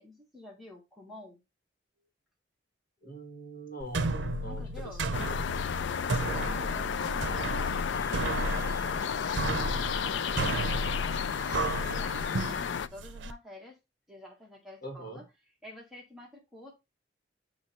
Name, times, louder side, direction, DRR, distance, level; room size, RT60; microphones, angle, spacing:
voice 1, 0.0-1.4 4.4-5.0 6.2-8.0 11.8-13.8 14.1-16.7, left 1 dB, ahead, 1.3 m, -49 dB
voice 2, 3.0-4.7 5.1-5.4 14.8-15.2, right 1 dB, 50° left, 2.0 m, -42 dB
sound 1, 3.8-13.3, right 2 dB, 75° right, 0.6 m, -33 dB
sound 2, 5.1-12.9, left 7 dB, 75° left, 0.4 m, -32 dB
Wind instrument woodwind instrument, 7.9-12.7, right 2 dB, 20° right, 2.6 m, -49 dB
7.4 x 3.1 x 4.2 m
head